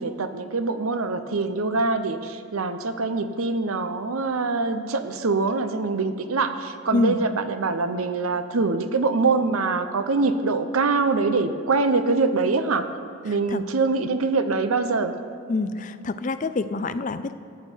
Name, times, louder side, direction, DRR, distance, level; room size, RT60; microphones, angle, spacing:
voice 1, 0.0-12.9 13.2-15.2, right 3 dB, 90° right, 10 dB, 0.7 m, -24 dB
voice 2, 15.5-17.3, left 3 dB, 40° left, 12 dB, 0.4 m, -26 dB
14.0 x 9.0 x 4.5 m, 2.6 s
head